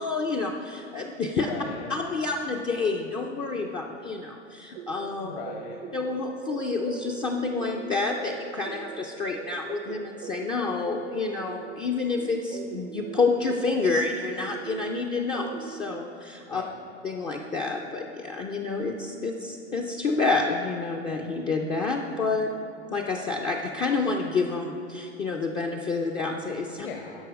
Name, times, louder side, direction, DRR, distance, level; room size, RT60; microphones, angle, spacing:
voice 1, 0.0-1.5 1.9-5.3 5.9-16.6 17.0-22.5 22.9-26.9, left 3 dB, 15° left, 0 dB, 0.3 m, -28 dB
voice 2, 1.4-2.0 5.2-5.8 16.5-17.0 26.7-27.3, left 6 dB, 60° left, 2 dB, 1.0 m, -39 dB
sound 1, 4.8-16.0, right 10 dB, 45° right, 0.5 m, -41 dB
11.5 x 5.6 x 5.1 m, 2.6 s
figure-of-eight pair, 100°, 35 cm